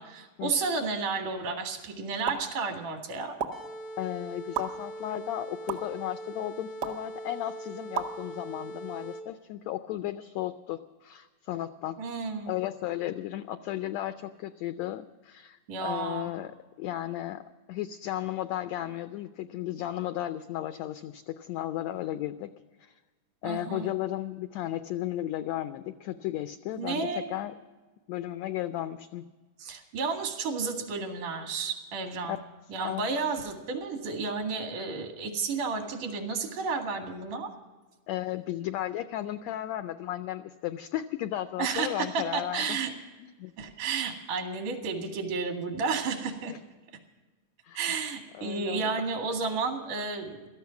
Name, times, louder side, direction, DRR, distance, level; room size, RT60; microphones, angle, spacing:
voice 1, 0.0-3.4 12.0-12.5 15.7-16.3 23.4-23.9 26.8-27.3 29.6-32.4 32.7-37.5 41.6-42.9 43.6-46.5 47.8-50.4, right 4 dB, 75° right, 4 dB, 3.5 m, -32 dB
sound 1, 2.3-2.4 3.4-3.5 4.5-4.6 5.7-5.8 6.8-7.0 7.9-8.1, right 7 dB, 55° right, 1.0 m, -30 dB
sound 2, 3.5-9.5, right 1 dB, 45° left, 0.5 m, -41 dB
voice 2, 4.0-12.0 12.5-22.5 22.8-22.9 23.4-27.6 28.1-29.3 32.3-32.4 32.8-33.0 38.1-42.8 43.2-43.5 46.5-46.6 47.6-47.8 48.3-48.9, left 13 dB, 85° left, 10 dB, 1.5 m, -34 dB
17.0 x 13.5 x 5.8 m, 1.3 s
omnidirectional pair, 3.7 m